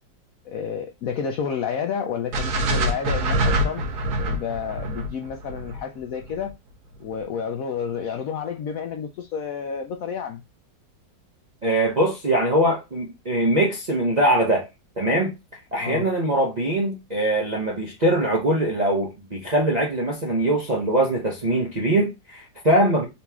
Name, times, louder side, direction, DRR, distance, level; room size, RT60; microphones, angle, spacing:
voice 1, 0.4-3.8 4.3-6.6 7.0-10.4 15.7-16.1, left 7 dB, 75° left, 0.8 m, -30 dB
sound 1, 2.3-6.5, equal, 65° right, 1.3 m, -25 dB
voice 2, 11.6-14.7 15.0-15.3 15.7-23.1, right 1 dB, 45° right, 0.5 m, -22 dB
4.1 x 3.0 x 3.4 m
omnidirectional pair, 2.0 m